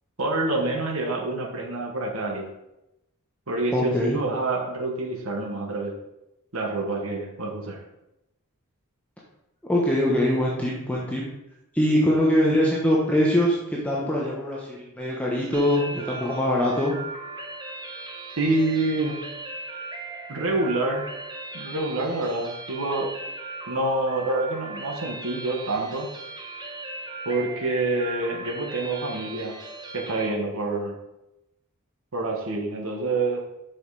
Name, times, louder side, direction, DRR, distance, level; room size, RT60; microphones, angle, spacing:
voice 1, 0.2-2.5 3.5-5.9 6.5-7.8 18.4-19.2 20.3-21.0 21.5-23.1 23.7-26.1 27.2-29.5 29.9-30.9 32.1-33.4, right 2 dB, 65° right, 0 dB, 1.5 m, -27 dB
voice 2, 3.7-4.2 9.7-11.2 11.7-13.6 13.8-16.9, left 1 dB, 5° left, -4 dB, 1.2 m, -23 dB
sound 1, 15.5-30.3, right 2 dB, 20° right, 1.2 m, -38 dB
7.8 x 6.5 x 4.9 m, 0.90 s
head